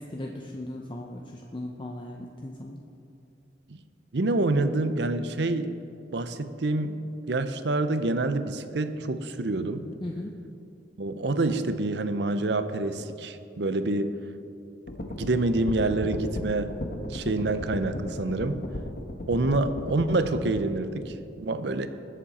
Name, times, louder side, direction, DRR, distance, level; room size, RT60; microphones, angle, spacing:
voice 1, 0.0-2.8 10.0-10.3, left 1 dB, 25° left, 1 dB, 0.6 m, -37 dB
voice 2, 4.1-5.7 6.1-9.9 11.0-14.2 15.1-16.8 17.1-18.6 19.3-21.9, right 2 dB, 65° right, 11 dB, 0.7 m, -27 dB
sound 1, 14.9-20.6, left 1 dB, 55° left, 1.1 m, -35 dB
20.5 x 7.4 x 4.3 m, 2.7 s
head